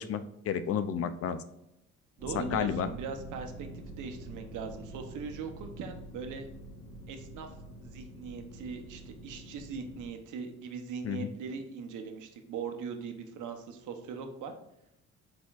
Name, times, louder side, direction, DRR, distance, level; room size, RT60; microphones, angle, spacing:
voice 1, 0.0-1.4 2.3-2.9 11.0-11.3, left 8 dB, 50° left, 12 dB, 0.4 m, -31 dB
sound 1, 2.2-10.1, right 1 dB, 10° left, 1.1 m, -46 dB
voice 2, 2.2-6.5 7.1-7.5 7.8-14.5, right 5 dB, 80° right, 5 dB, 0.8 m, -40 dB
4.4 x 4.3 x 2.4 m, 0.84 s
cardioid pair, 90°, 30 cm